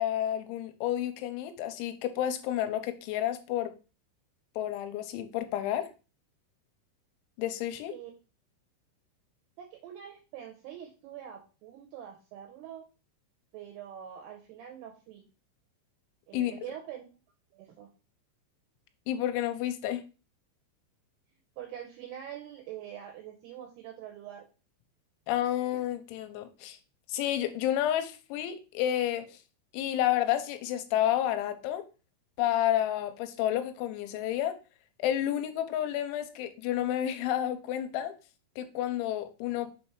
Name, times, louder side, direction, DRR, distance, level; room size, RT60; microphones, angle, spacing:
voice 1, 0.0-3.7 4.6-5.9 7.4-7.9 16.3-16.5 19.1-20.0 25.3-26.8 27.1-29.3 29.7-31.8 32.4-34.6 35.0-38.1 38.6-39.7, left 12 dB, 85° left, 8 dB, 3.0 m, -30 dB
voice 2, 9.6-12.8 13.5-15.3 16.3-17.1 17.5-17.9 21.6-24.5, right 10 dB, 80° right, 3 dB, 2.4 m, -44 dB
6.9 x 3.2 x 4.6 m, 0.33 s
omnidirectional pair, 5.5 m